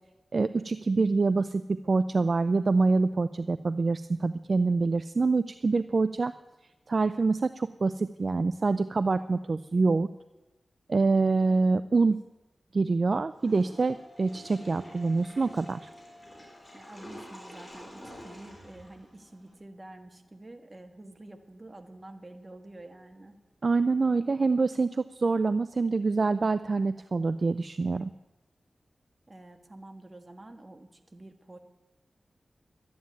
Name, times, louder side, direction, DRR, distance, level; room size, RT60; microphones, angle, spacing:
voice 1, 0.3-6.3 6.9-10.1 10.9-12.2 12.7-15.9 23.6-28.1, right 3 dB, 50° right, 13 dB, 0.4 m, -26 dB
sound 1, 13.2-22.4, left 1 dB, 15° right, 6.4 m, -56 dB
Water / Toilet flush, 13.3-19.5, equal, 25° left, 4.9 m, -49 dB
voice 2, 16.7-23.4 29.3-31.6, right 2 dB, 30° right, 6 dB, 1.6 m, -48 dB
12.0 x 9.4 x 9.4 m, 1.0 s
wide cardioid pair, 85°, 0 cm